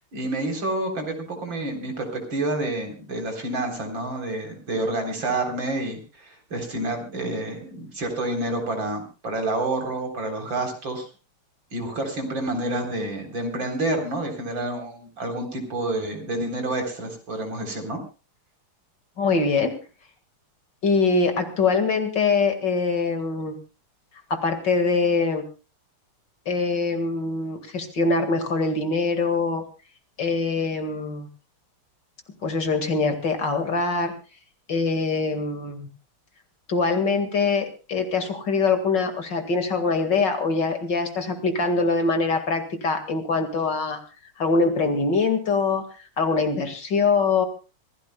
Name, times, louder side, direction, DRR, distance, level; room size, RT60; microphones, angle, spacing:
voice 1, 0.1-11.1 11.7-18.0, right 2 dB, 60° right, 4 dB, 4.6 m, -28 dB
voice 2, 19.2-19.8 20.8-23.6 24.3-25.4 26.5-29.6 30.2-31.3 32.4-34.1 34.7-35.9 36.7-44.0 44.4-45.8 46.2-47.5, left 4 dB, 55° left, 7 dB, 2.6 m, -23 dB
25.5 x 16.0 x 2.3 m, 0.34 s
omnidirectional pair, 2.4 m